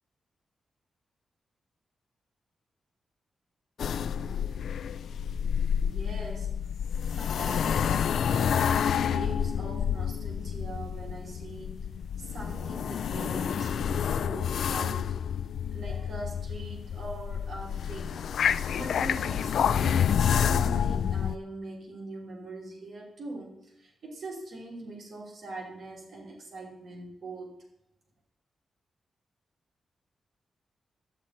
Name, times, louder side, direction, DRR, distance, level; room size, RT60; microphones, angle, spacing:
sound 1, 3.8-21.4, left 8 dB, 85° left, 0.3 m, -29 dB
voice 1, 5.8-6.5 7.1-11.9 12.2-15.2 15.7-18.2 18.7-27.6, right 2 dB, 55° right, -2 dB, 2.9 m, -42 dB
12.0 x 8.7 x 4.2 m, 0.83 s
wide cardioid pair, 175°, 0 cm